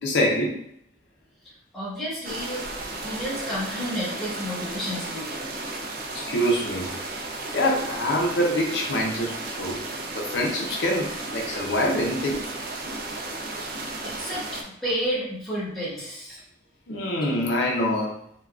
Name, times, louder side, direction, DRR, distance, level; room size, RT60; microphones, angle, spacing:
voice 1, 0.0-0.6 6.1-6.9 7.5-9.8 10.1-12.5 16.9-18.2, equal, 80° left, -1 dB, 0.5 m, -25 dB
voice 2, 1.7-2.6 3.0-5.6 13.6-16.4, equal, ahead, -10 dB, 1.2 m, -31 dB
sound 1, 2.2-14.6, right 2 dB, 55° right, 0.4 m, -34 dB
3.4 x 2.2 x 2.3 m, 0.68 s
head